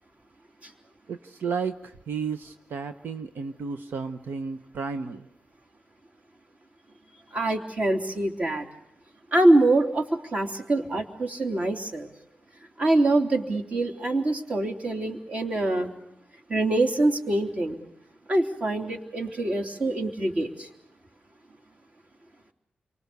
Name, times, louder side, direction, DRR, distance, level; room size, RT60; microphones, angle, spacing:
voice 1, 1.1-5.3, right 5 dB, 85° right, 8 dB, 1.1 m, -33 dB
voice 2, 7.3-8.6 9.3-12.1 12.8-15.9 16.5-17.8 18.3-20.7, right 2 dB, 40° right, 4 dB, 3.3 m, -24 dB
29.0 x 24.0 x 6.8 m, 0.83 s
wide cardioid pair, 110°, 3 cm